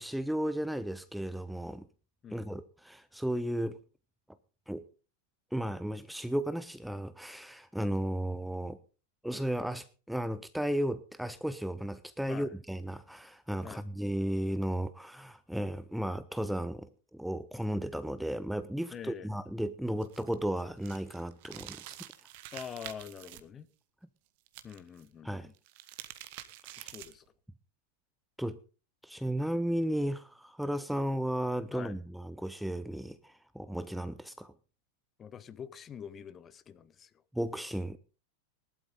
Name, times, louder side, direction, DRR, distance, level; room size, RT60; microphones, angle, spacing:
voice 1, 0.0-1.9 2.3-3.8 4.7-4.9 5.5-8.8 9.2-22.0 25.2-25.5 26.7-26.9 28.4-28.6 29.0-34.5 37.3-38.0, right 1 dB, ahead, 0.6 m, -34 dB
voice 2, 18.9-19.3 22.5-23.7 24.6-25.5 26.8-27.2 31.7-32.0 35.2-37.1, left 8 dB, 25° left, 0.9 m, -45 dB
sound 1, 20.0-23.4 24.5-25.0 25.5-27.3, right 14 dB, 50° right, 1.3 m, -47 dB
18.0 x 12.0 x 3.8 m
figure-of-eight pair, 90°, 0 cm